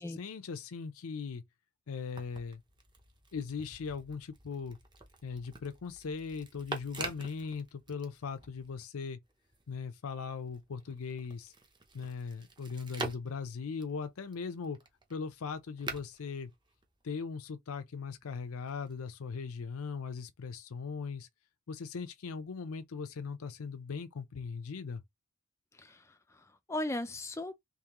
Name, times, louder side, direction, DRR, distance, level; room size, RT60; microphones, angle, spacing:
voice 1, 0.0-1.4 1.9-2.6 3.3-4.8 5.2-9.2 9.7-11.5 11.9-14.8 15.1-16.5 17.0-21.3 21.7-25.0, left 5 dB, 75° left, 0.5 m, -39 dB
sound 1, 1.9-8.9 9.2-17.4 18.2-19.0, right 3 dB, 20° right, 0.7 m, -47 dB
voice 2, 25.7-27.6, left 1 dB, 10° left, 0.4 m, -38 dB
3.6 x 3.2 x 2.9 m
head